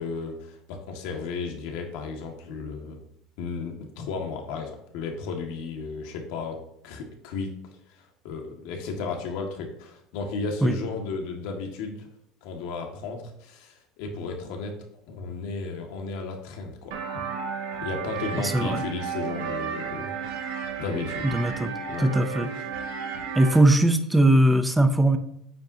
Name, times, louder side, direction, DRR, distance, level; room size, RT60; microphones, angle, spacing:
voice 1, 0.0-3.0 3.4-6.6 6.8-7.6 7.9-12.1 12.4-17.2 17.8-20.4 20.8-21.3 21.9-22.1, left 4 dB, 70° left, 2 dB, 1.9 m, -34 dB
sound 1, 16.9-23.6, right 6 dB, 85° right, 2.3 m, -33 dB
voice 2, 18.4-18.8 21.2-21.7 22.0-22.5 23.3-25.2, right 1 dB, 5° right, 8 dB, 0.7 m, -20 dB
9.0 x 8.0 x 2.9 m, 0.76 s
cardioid pair, 155°, 0 cm